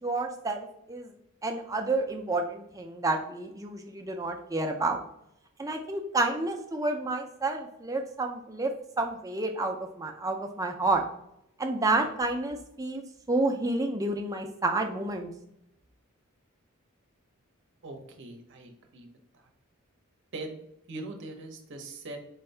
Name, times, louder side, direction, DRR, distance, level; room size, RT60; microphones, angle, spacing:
voice 1, 0.0-1.1 1.4-5.0 5.6-8.7 9.0-11.0 11.6-13.0 13.3-15.3, right 2 dB, 15° right, 3 dB, 0.5 m, -29 dB
voice 2, 17.8-19.1 20.3-20.6 20.9-22.2, right 2 dB, 55° right, 3 dB, 0.8 m, -41 dB
4.6 x 2.6 x 3.2 m, 0.78 s
head